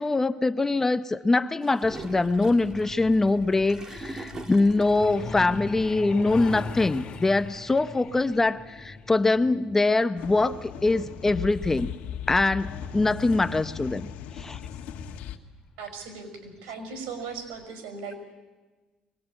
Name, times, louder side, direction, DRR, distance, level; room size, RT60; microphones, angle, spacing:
voice 1, 0.0-12.0 12.3-14.1 14.4-14.6, left 2 dB, 15° left, 12 dB, 0.7 m, -23 dB
Gurgling / Toilet flush, 1.6-5.4, right 3 dB, 25° right, 2.3 m, -42 dB
Truck, 1.8-14.1 15.3-15.5 15.9-16.1 16.5-16.7 17.1-17.2 17.6-17.7, left 4 dB, 40° left, 2.5 m, -41 dB
sound 1, 10.2-15.4, left 8 dB, 75° left, 1.6 m, -37 dB
voice 2, 15.8-18.2, right 5 dB, 85° right, 6 dB, 5.7 m, -38 dB
23.5 x 19.5 x 8.8 m, 1.3 s
cardioid pair, 115°, 2 cm